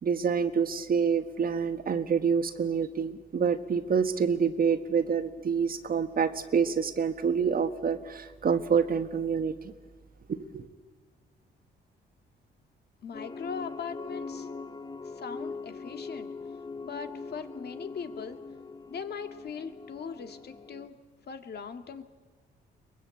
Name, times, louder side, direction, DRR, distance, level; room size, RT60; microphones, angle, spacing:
voice 1, 0.0-9.5 10.3-10.7, right 6 dB, 45° right, 1.6 m, -27 dB
voice 2, 13.0-14.5 15.0-16.3 16.8-18.4 18.9-21.0 21.3-22.0, left 6 dB, 55° left, 2.1 m, -40 dB
sound 1, 13.1-20.9, left 4 dB, 20° left, 0.9 m, -41 dB
23.0 x 21.5 x 8.5 m
cardioid pair, 90°, 20 cm